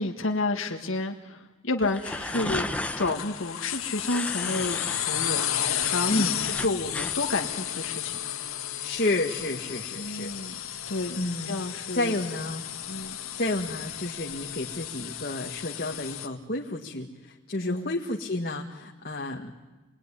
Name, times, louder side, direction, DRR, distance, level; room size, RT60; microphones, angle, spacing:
voice 1, 0.0-2.7 3.0-5.4 5.9-8.2 10.0-10.6 10.9-11.2 11.5-12.2 12.9-13.2 17.6-18.0, left 2 dB, 70° left, 3 dB, 1.8 m, -30 dB
sound 1, 1.8-3.2 4.0-5.0 5.4-7.2, left 1 dB, 5° left, 1.2 m, -34 dB
sound 2, 3.1-16.3, left 11 dB, 85° left, 1.9 m, -33 dB
voice 2, 8.8-10.3 11.1-11.5 11.9-12.6 13.4-19.5, left 2 dB, 45° left, 0 dB, 1.9 m, -30 dB
28.0 x 21.5 x 10.0 m, 1.2 s
head